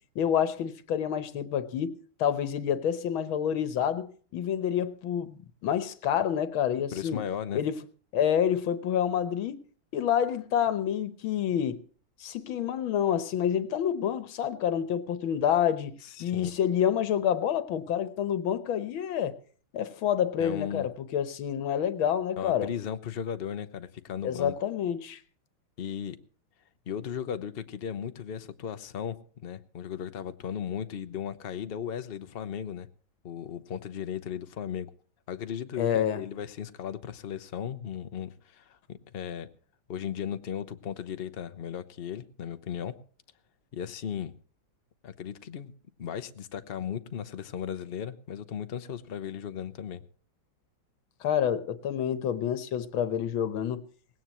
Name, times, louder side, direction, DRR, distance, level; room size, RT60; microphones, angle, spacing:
voice 1, 0.2-7.2 7.5-7.8 8.1-9.6 9.9-11.8 12.2-19.4 19.7-22.7 24.2-25.2 35.8-36.2 51.2-53.8, left 9 dB, 85° left, 1.9 m, -28 dB
voice 2, 6.9-7.6 16.0-16.5 20.4-20.9 22.4-24.5 25.8-26.2 26.9-32.9 33.2-34.9 35.3-39.5 39.9-42.9 43.7-44.3 45.0-45.7 46.0-50.0, left 8 dB, 50° left, 0.6 m, -36 dB
19.0 x 17.0 x 3.1 m
omnidirectional pair, 2.2 m